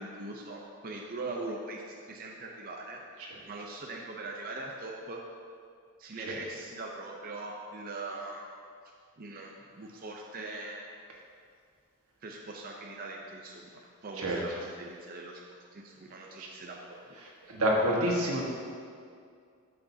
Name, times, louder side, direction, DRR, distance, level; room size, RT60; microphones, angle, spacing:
voice 1, 0.0-3.0 3.5-5.2 6.0-8.4 9.2-10.8 12.2-13.7 14.0-15.4 15.7-17.0, right 2 dB, 40° right, -1 dB, 0.7 m, -41 dB
voice 2, 17.5-18.4, equal, 85° right, -3 dB, 1.6 m, -27 dB
11.5 x 6.5 x 2.8 m, 2.2 s
head